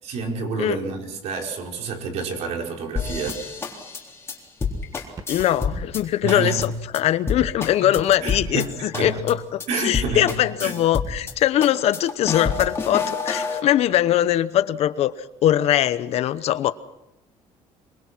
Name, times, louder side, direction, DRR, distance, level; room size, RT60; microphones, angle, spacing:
voice 1, 0.0-3.5 6.2-6.7 7.8-7.9 8.2-9.3 9.7-10.3 10.6-10.7, right 4 dB, 60° right, 2 dB, 5.0 m, -29 dB
sound 1, 3.0-6.0 6.3-6.7 6.9-7.0 7.3-8.7 8.9-9.3 9.6-9.7 9.9-11.3 11.6-13.6, left 5 dB, 20° left, 3.8 m, -28 dB
sound 2, 3.2-3.6 5.2-5.6 6.6-7.1 8.0-8.4 9.0-9.6, right 4 dB, 30° right, 1.6 m, -41 dB
voice 2, 5.3-15.1 15.4-16.7, left 12 dB, 55° left, 14 dB, 1.0 m, -21 dB
26.0 x 24.0 x 6.1 m, 0.91 s
cardioid pair, 150°, 13 cm